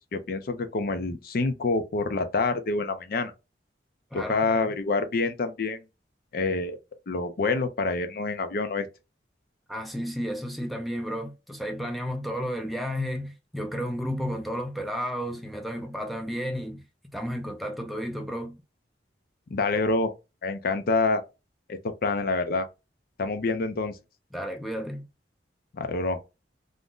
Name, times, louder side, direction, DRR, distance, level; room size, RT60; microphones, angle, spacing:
voice 1, 0.1-3.3 4.1-5.8 6.3-6.8 7.1-8.9 19.5-20.1 20.4-21.2 21.7-22.7 23.2-24.0 25.7-26.2, left 3 dB, 55° left, 0.5 m, -27 dB
voice 2, 4.1-4.8 9.7-16.8 17.1-18.6 24.3-25.1, equal, ahead, 0.4 m, -32 dB
2.5 x 2.1 x 3.6 m
head